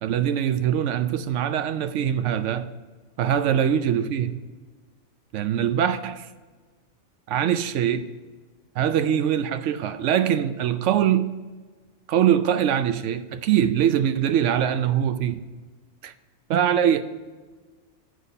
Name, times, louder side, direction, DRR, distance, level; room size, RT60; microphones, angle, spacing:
voice 1, 0.0-2.7 3.2-4.4 5.3-6.3 7.3-8.1 8.8-11.3 12.1-15.4 16.0-16.1 16.5-17.0, right 9 dB, 85° right, 0.9 m, -23 dB
8.2 x 6.5 x 5.2 m
omnidirectional pair, 1.2 m